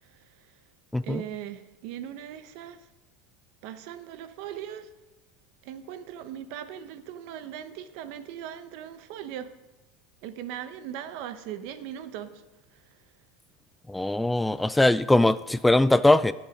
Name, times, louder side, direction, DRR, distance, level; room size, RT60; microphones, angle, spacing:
voice 1, 1.0-2.9 3.6-4.9 5.6-9.5 10.2-12.4, right 10 dB, 70° right, 1.0 m, -39 dB
voice 2, 13.9-16.3, left 2 dB, 5° left, 0.3 m, -21 dB
17.5 x 6.4 x 5.2 m
supercardioid pair, 120°, 0 cm